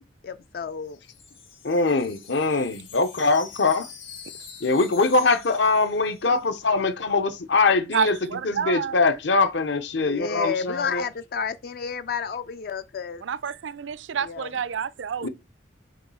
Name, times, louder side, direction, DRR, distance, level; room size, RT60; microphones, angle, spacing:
voice 1, 0.2-1.0 10.0-13.2 14.2-14.5, left 6 dB, 50° left, 0.3 m, -31 dB
Wind chime, 0.6-6.6, left 7 dB, 85° left, 3.4 m, -45 dB
voice 2, 1.6-3.9 4.6-8.2 8.4-11.0 15.2-15.3, left 3 dB, 70° left, 0.9 m, -22 dB
voice 3, 7.9-9.0 13.2-15.3, right 7 dB, 75° right, 0.4 m, -28 dB
6.6 x 3.1 x 5.6 m
head